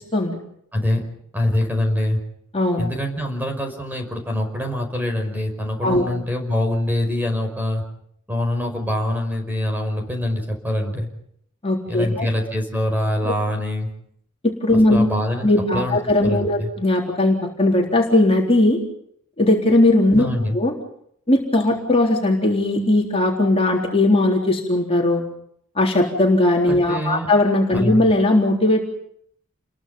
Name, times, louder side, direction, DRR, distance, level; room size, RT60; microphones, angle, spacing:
voice 1, 0.7-1.0 1.3-2.2 2.8-7.8 8.3-11.1 11.9-13.9 14.9-16.0 16.2-16.7 20.2-20.6 26.7-27.3 27.7-28.0, left 1 dB, 10° right, 4 dB, 5.3 m, -24 dB
voice 2, 2.5-2.9 5.8-6.1 11.6-12.3 13.2-13.3 14.4-15.1 15.4-18.8 19.4-20.3 20.5-20.8 21.3-25.2 25.8-28.8, left 1 dB, 30° left, -1 dB, 3.7 m, -18 dB
29.5 x 22.0 x 5.5 m, 0.69 s
head